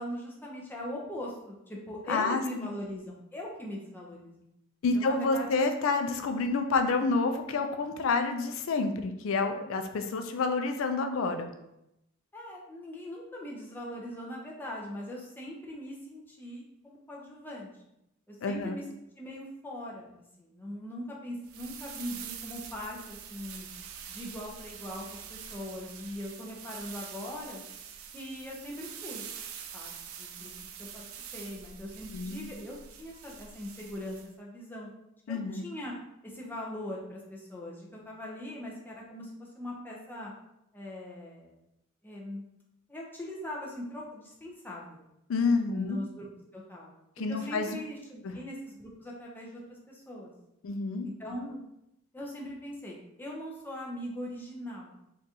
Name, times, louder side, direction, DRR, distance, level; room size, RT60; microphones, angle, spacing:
voice 1, 0.0-4.3 4.9-5.6 12.3-17.7 18.3-18.8 19.2-20.1 20.4-23.7 24.1-27.6 28.1-29.2 29.7-29.9 30.2-30.5 30.8-31.0 31.3-34.9 35.3-35.9 36.2-40.3 40.7-41.5 42.0-42.4 42.9-45.0 45.7-46.3 46.5-46.9 47.3-50.3 51.0-51.6 52.1-54.9, left 1 dB, 10° left, -3 dB, 0.5 m, -40 dB
voice 2, 2.1-2.7 4.8-11.5 18.4-18.8 32.1-32.5 35.3-35.7 45.3-46.0 47.2-47.7 48.2-48.4 50.6-51.1, left 3 dB, 70° left, 7 dB, 0.4 m, -29 dB
sound 1, 21.4-34.3, right 7 dB, 90° right, 0.4 m, -45 dB
3.7 x 2.4 x 2.7 m, 0.85 s
head